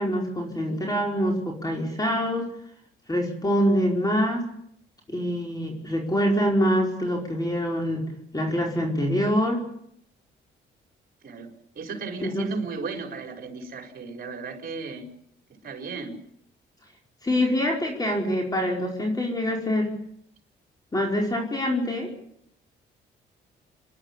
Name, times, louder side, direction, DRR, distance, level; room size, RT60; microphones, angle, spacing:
voice 1, 0.0-2.5 3.1-4.5 5.1-9.6 12.2-12.5 17.2-19.9 20.9-22.1, equal, 20° left, 1 dB, 5.0 m, -25 dB
voice 2, 11.2-15.1 15.6-16.2, right 4 dB, 50° right, 4 dB, 4.7 m, -35 dB
26.5 x 11.0 x 10.0 m, 0.72 s
cardioid pair, 90°, 20 cm